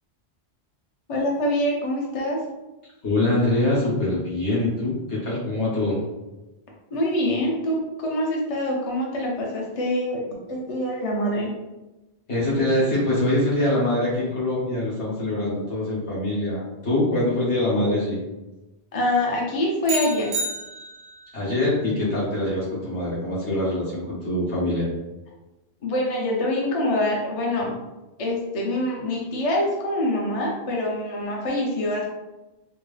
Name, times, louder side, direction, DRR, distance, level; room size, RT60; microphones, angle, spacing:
voice 1, 1.1-2.4 6.9-10.2 10.5-11.5 18.9-20.3 25.8-27.7 28.2-32.1, left 1 dB, 35° left, -2 dB, 0.7 m, -25 dB
voice 2, 3.0-6.0 12.3-18.2 21.3-24.9, left 1 dB, 75° left, -7 dB, 1.7 m, -24 dB
sound 1, 19.9-21.3, right 2 dB, 65° right, 0.8 m, -30 dB
4.4 x 2.0 x 3.2 m, 1.0 s
omnidirectional pair, 1.1 m